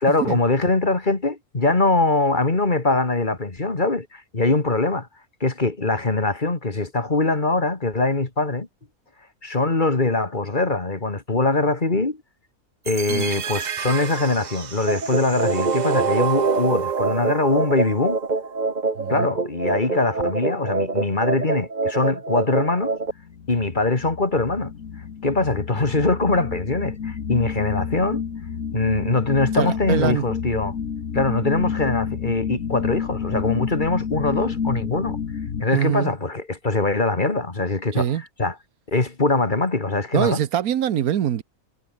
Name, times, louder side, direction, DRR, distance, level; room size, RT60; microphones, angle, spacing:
voice 1, 0.0-5.1 5.4-8.7 9.4-12.2 12.9-18.2 19.1-22.9 23.5-24.7 25.2-28.2 28.7-30.8 31.1-35.2 35.6-38.1 38.4-38.5 38.9-40.4, left 2 dB, 35° left, 2.3 m, -22 dB
sound 1, 12.9-18.9, right 7 dB, 45° right, 0.5 m, -29 dB
voice 2, 13.1-13.4 19.0-19.3 29.5-30.2 35.7-36.1 37.9-38.2 40.1-41.4, right 10 dB, 80° right, 1.4 m, -24 dB
sound 2, 14.9-23.1, right 3 dB, 30° right, 2.0 m, -26 dB
sound 3, 23.2-35.6, left 7 dB, 60° left, 1.7 m, -30 dB
omnidirectional pair, 1.5 m